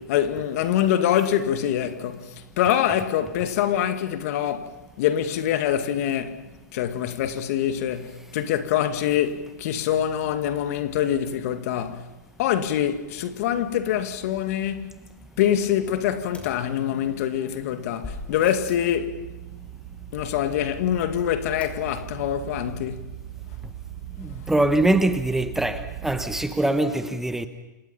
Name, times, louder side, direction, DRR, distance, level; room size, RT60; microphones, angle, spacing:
voice 1, 0.0-6.4 6.7-12.1 12.4-14.9 15.4-19.2 20.1-23.0, left 10 dB, 50° left, 2.2 m, -25 dB
sound 1, 16.3-17.3 18.0-18.9 21.6-22.2 22.5-22.6 22.8-22.9, left 2 dB, 10° left, 5.1 m, -41 dB
sound 2, 18.2-26.5, right 12 dB, 55° right, 6.3 m, -39 dB
voice 2, 24.2-27.5, right 1 dB, 5° right, 1.3 m, -23 dB
29.5 x 27.0 x 5.7 m
hypercardioid pair, 125°, 10 cm